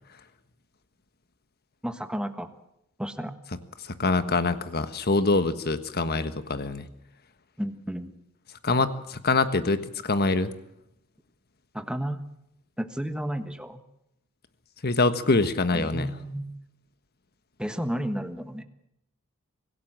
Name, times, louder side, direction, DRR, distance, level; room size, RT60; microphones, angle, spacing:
voice 1, 1.8-2.5 3.0-3.4 7.6-8.1 11.7-12.2 12.8-13.8 15.7-16.6 17.6-18.6, equal, 5° right, 8 dB, 1.4 m, -32 dB
voice 2, 3.8-6.9 8.6-10.5 14.8-16.1, left 3 dB, 50° left, 11 dB, 1.4 m, -25 dB
25.5 x 17.0 x 7.6 m, 0.80 s
head